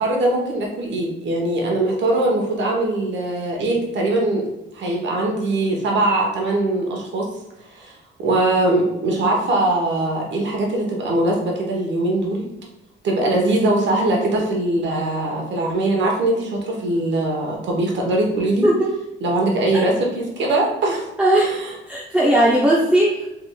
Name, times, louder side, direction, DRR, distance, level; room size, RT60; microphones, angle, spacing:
voice 1, 0.0-4.4 4.7-7.3 7.7-7.9 8.2-12.5 13.0-18.7 19.2-21.1 21.4-21.5, right 2 dB, 65° right, -1 dB, 1.0 m, -21 dB
voice 2, 21.2-21.5 21.9-23.3, right 1 dB, 5° right, -4 dB, 0.7 m, -17 dB
4.9 x 3.4 x 2.2 m, 0.92 s
cardioid pair, 90°, 20 cm